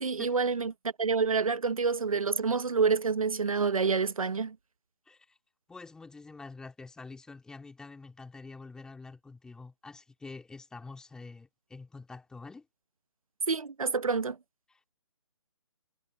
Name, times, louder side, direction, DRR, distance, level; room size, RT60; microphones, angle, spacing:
voice 1, 0.0-0.7 1.0-4.6 13.5-14.4, right 5 dB, 80° right, 1.2 m, -28 dB
voice 2, 5.1-5.4 5.7-12.6 14.7-14.9, left 3 dB, 5° left, 3.0 m, -47 dB
figure-of-eight pair, 155°, 18 cm